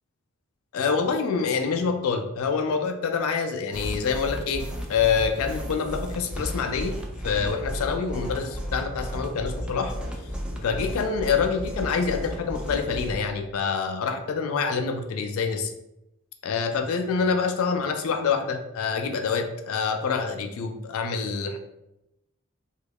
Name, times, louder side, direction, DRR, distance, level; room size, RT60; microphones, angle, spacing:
voice 1, 0.7-7.0 7.2-9.9 10.6-15.7 16.4-21.6, left 5 dB, 70° left, 6 dB, 0.3 m, -26 dB
sound 1, 3.7-13.2, equal, 5° right, 0.3 m, -34 dB
3.0 x 2.3 x 3.4 m, 0.88 s
head